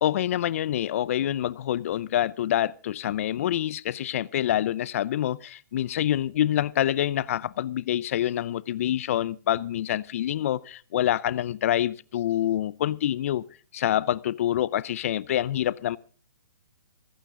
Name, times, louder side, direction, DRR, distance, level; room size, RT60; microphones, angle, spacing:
voice 1, 0.0-13.4 13.7-16.0, left 12 dB, 50° left, 0.6 m, -26 dB
27.0 x 9.0 x 3.8 m
hypercardioid pair, 140°, 10 cm